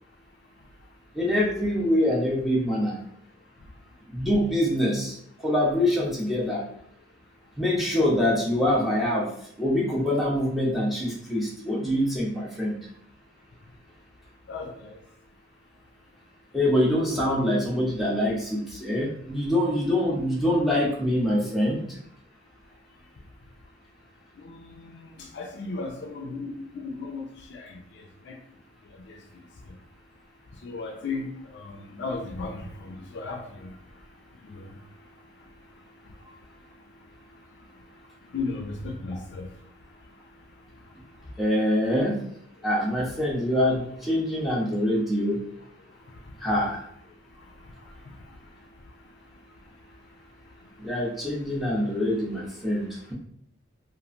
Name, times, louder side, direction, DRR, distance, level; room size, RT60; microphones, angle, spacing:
voice 1, 1.1-3.0 4.1-6.6 7.6-9.3 9.6-12.8 16.5-21.8 41.4-42.1 42.6-45.4 46.4-46.8 50.8-53.1, left 1 dB, ahead, -5 dB, 0.6 m, -25 dB
voice 2, 14.5-15.0 24.4-28.4 28.9-29.2 30.6-33.7 34.4-34.8 38.3-39.5 46.1-46.2 47.8-48.2, left 3 dB, 60° left, 3 dB, 0.4 m, -36 dB
2.9 x 2.5 x 2.5 m, 0.68 s
head